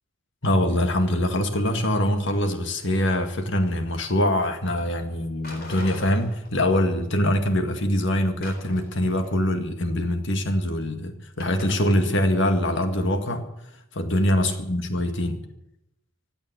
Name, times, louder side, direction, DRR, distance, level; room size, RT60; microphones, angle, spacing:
voice 1, 0.4-13.4 13.9-15.4, left 1 dB, 65° left, 1.9 m, -23 dB
sound 1, 5.4-6.8 7.1-7.2 8.4-9.4 11.4-12.0, left 2 dB, 45° left, 4.1 m, -41 dB
16.0 x 8.9 x 9.8 m
head